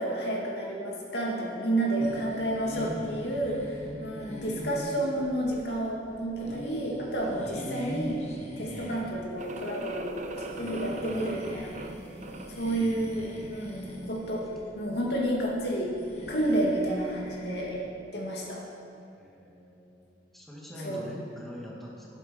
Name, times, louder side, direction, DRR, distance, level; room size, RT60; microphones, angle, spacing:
voice 1, 0.0-8.2 8.6-11.7 12.5-14.5 14.8-15.9 16.3-17.9 18.1-18.7 20.8-21.1, right 1 dB, 65° left, -2 dB, 2.4 m, -30 dB
sound 1, 2.0-17.8, equal, 40° left, 1.5 m, -42 dB
sound 2, 9.4-12.7, right 2 dB, 45° right, 0.7 m, -41 dB
voice 2, 19.2-22.2, equal, ahead, -5 dB, 2.0 m, -45 dB
12.5 x 10.5 x 5.5 m, 2.6 s
head